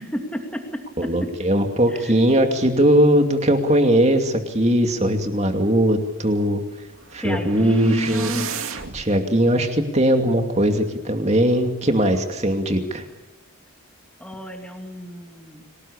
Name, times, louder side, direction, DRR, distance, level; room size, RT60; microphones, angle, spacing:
voice 1, 0.0-1.3 1.9-2.1 7.2-8.5 14.2-15.6, equal, 5° left, 3 dB, 2.7 m, -31 dB
voice 2, 1.0-6.6 7.1-8.4 8.9-13.0, right 1 dB, 30° right, 5 dB, 2.5 m, -19 dB
sound 1, 6.9-9.1, right 6 dB, 80° right, 2.4 m, -33 dB
26.5 x 18.5 x 8.7 m, 1.0 s
head